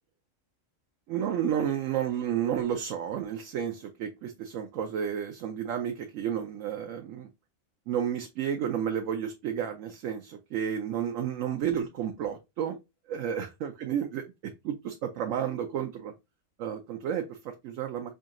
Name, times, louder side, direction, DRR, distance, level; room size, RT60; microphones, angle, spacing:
voice 1, 1.1-7.3 7.9-12.8 13.1-14.2 14.6-16.1 16.6-18.1, right 9 dB, 70° right, 1.0 m, -31 dB
5.1 x 2.7 x 2.4 m
omnidirectional pair, 1.4 m